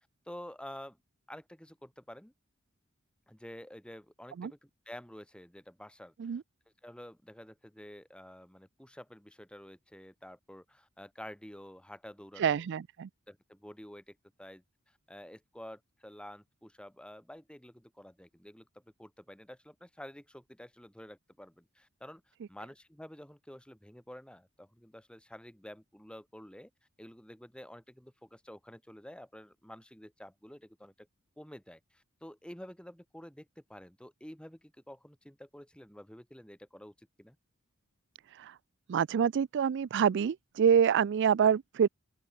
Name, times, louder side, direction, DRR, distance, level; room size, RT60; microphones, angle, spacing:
voice 1, 0.3-1.0 1.3-2.3 3.3-6.4 6.8-12.6 13.3-18.7 19.0-26.7 27.0-31.1 31.4-37.4, equal, 5° left, 2.8 m, -50 dB
voice 2, 12.4-13.1 38.4-38.5 38.9-41.9, right 7 dB, 55° right, 0.3 m, -26 dB
open air
head